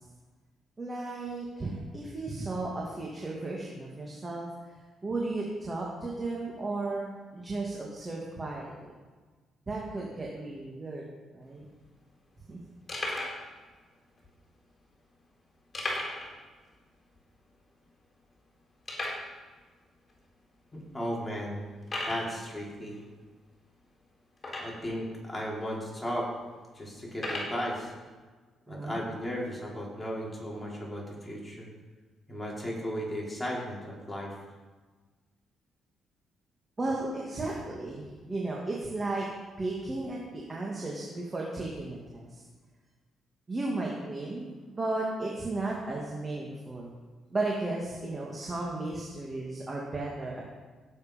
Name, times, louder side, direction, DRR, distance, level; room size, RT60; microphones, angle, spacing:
voice 1, 0.8-4.5 5.0-8.9 9.7-11.0 11.3-11.7 12.5-12.6 28.7-29.0 36.8-39.3 39.6-42.4 43.5-46.9 47.3-50.4, right 2 dB, 25° right, -2 dB, 2.4 m, -34 dB
sound 1, 11.4-11.5 11.7-11.9 12.4-12.5 12.9-13.4 14.2-14.3 15.7-16.3 16.6-16.7 17.2-17.3 17.8-17.9 18.9-19.3 20.1-20.2 20.8-20.9 21.8-22.3 24.4-24.9 25.7-25.8 27.1-27.6, left 1 dB, 25° left, 4.0 m, -35 dB
voice 2, 20.7-21.7 22.0-23.0 24.6-26.3 26.7-27.9 28.7-31.7 32.3-34.3, equal, 10° left, -4 dB, 4.9 m, -35 dB
17.0 x 8.0 x 5.4 m, 1.4 s
cardioid pair, 90°, 0 cm